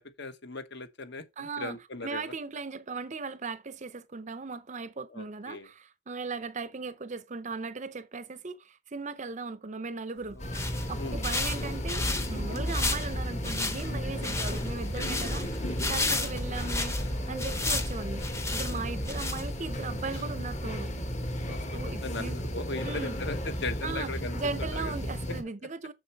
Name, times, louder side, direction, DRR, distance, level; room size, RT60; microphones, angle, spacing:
voice 1, 0.0-2.3 5.1-5.7 10.3-11.2 14.9-15.0 16.0-16.2 18.7-19.1 21.4-25.0 25.3-25.4, left 3 dB, 55° left, 1.2 m, -39 dB
voice 2, 1.4-1.8 2.0-18.2 18.5-20.9 21.7-22.4 22.8-23.2 23.8-25.9, right 4 dB, 35° right, 0.6 m, -38 dB
sound 1, 10.3-19.8, left 2 dB, 15° left, 0.8 m, -33 dB
sound 2, 10.4-25.4, equal, 35° left, 1.4 m, -34 dB
sound 3, 14.4-20.3, left 1 dB, 80° left, 5.1 m, -52 dB
7.0 x 6.7 x 4.4 m
head